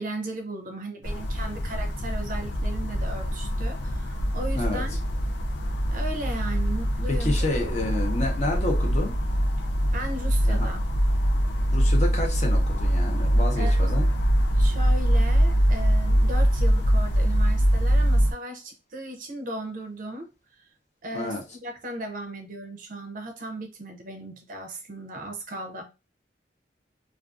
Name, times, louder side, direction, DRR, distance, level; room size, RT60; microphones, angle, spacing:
voice 1, 0.0-5.0 5.9-7.3 7.6-7.7 9.9-10.8 13.6-13.9 14.6-20.7 21.0-25.8, right 1 dB, 50° right, 0.5 m, -36 dB
sound 1, 1.0-18.3, equal, 85° left, 0.5 m, -23 dB
voice 2, 7.1-9.1 10.5-10.7 11.7-14.1 21.1-21.4, left 2 dB, 40° left, 0.7 m, -29 dB
2.5 x 2.3 x 2.4 m
head